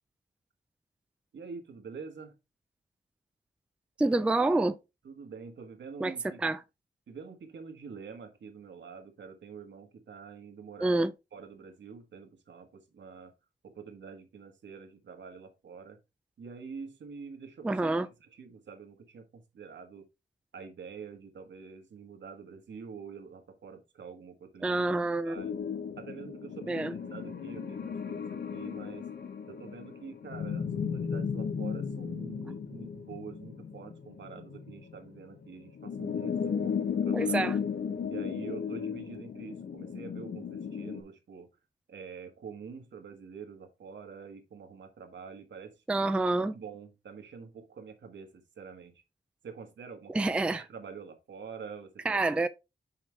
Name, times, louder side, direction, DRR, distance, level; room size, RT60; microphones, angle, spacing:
voice 1, 1.3-2.3 5.0-6.4 7.1-11.0 11.3-13.3 13.6-16.0 16.4-17.9 18.2-20.0 20.5-24.9 25.2-25.6 26.0-29.1 29.5-37.4 38.1-41.5 41.9-46.1 46.4-49.0 49.4-52.4, right 5 dB, 80° right, 1.5 m, -46 dB
voice 2, 4.0-4.8 6.0-6.6 10.8-11.1 17.6-18.1 24.6-25.4 26.7-26.9 37.1-37.6 45.9-46.6 50.1-50.6 52.1-52.5, right 2 dB, 5° right, 0.3 m, -27 dB
sound 1, 25.4-41.0, left 6 dB, 65° left, 1.0 m, -35 dB
5.8 x 5.7 x 3.3 m
wide cardioid pair, 180°, 18 cm